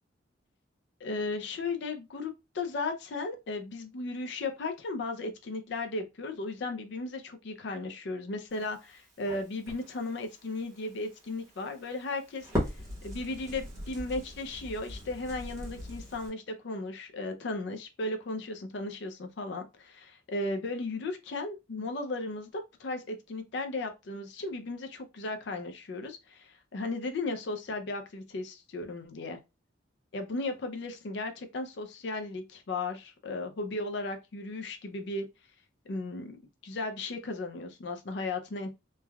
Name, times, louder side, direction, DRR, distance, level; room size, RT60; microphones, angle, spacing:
voice 1, 1.0-29.4 30.1-35.3 35.9-38.7, left 2 dB, 60° left, 0.4 m, -36 dB
Crackle, 8.5-16.3, equal, 15° right, 1.0 m, -40 dB
3.2 x 2.2 x 2.2 m
head